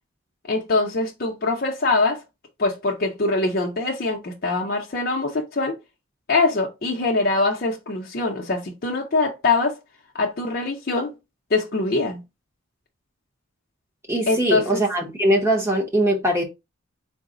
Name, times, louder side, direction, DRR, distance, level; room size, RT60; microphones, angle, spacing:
voice 1, 0.5-2.2 2.6-5.7 6.3-9.7 10.1-11.1 11.5-12.2 14.3-14.8, left 3 dB, 45° left, 0.6 m, -23 dB
voice 2, 14.1-16.4, right 1 dB, 10° right, 0.8 m, -21 dB
3.9 x 2.0 x 3.7 m
head